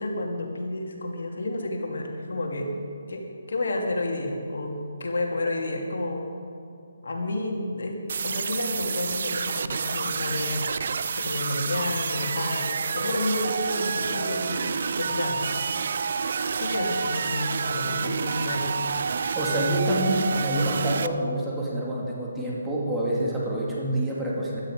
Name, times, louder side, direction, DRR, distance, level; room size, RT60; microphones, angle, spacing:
voice 1, 0.0-2.7 3.1-4.7 5.0-6.3 7.0-8.0 8.2-10.7 11.2-15.5 16.0-16.2 16.6-18.7, left 2 dB, 75° left, 1 dB, 2.6 m, -30 dB
sound 1, 8.1-21.1, right 5 dB, 55° right, 0.5 m, -29 dB
voice 2, 19.3-24.6, right 1 dB, 5° right, -5 dB, 2.4 m, -27 dB
15.5 x 12.5 x 5.1 m, 2.6 s
hypercardioid pair, 160°, 0 cm